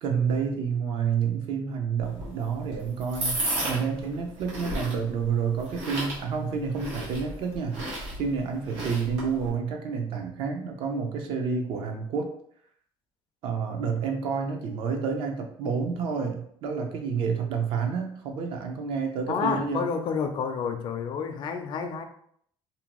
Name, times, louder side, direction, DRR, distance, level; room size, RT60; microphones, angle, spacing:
voice 1, 0.0-7.8 8.2-12.3 13.4-19.8, right 6 dB, 65° right, 3 dB, 0.5 m, -29 dB
sound 1, 2.0-9.5, right 1 dB, 85° right, 1.3 m, -34 dB
voice 2, 19.3-22.0, left 6 dB, 50° left, 7 dB, 0.4 m, -29 dB
2.7 x 2.2 x 2.9 m, 0.65 s
cardioid pair, 135°, 10 cm